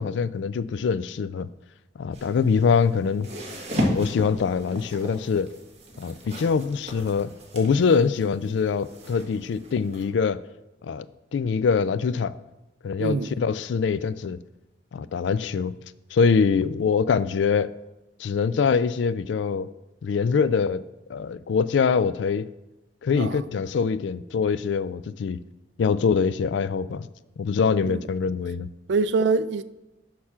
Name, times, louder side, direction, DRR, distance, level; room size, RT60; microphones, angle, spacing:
voice 1, 0.0-1.5 2.0-3.3 3.7-5.5 6.0-10.4 10.8-11.1 11.3-12.3 12.8-14.4 14.9-15.7 16.1-17.7 18.2-19.7 20.0-20.8 21.1-22.5 23.0-25.4 25.8-27.1 27.4-28.7, left 5 dB, 80° left, 0.3 m, -24 dB
sound 1, 2.1-10.0, equal, 35° right, 1.4 m, -35 dB
voice 2, 13.0-13.3 23.2-23.4 27.8-28.0 28.9-29.6, right 4 dB, 70° right, 0.4 m, -24 dB
6.6 x 5.8 x 5.6 m
head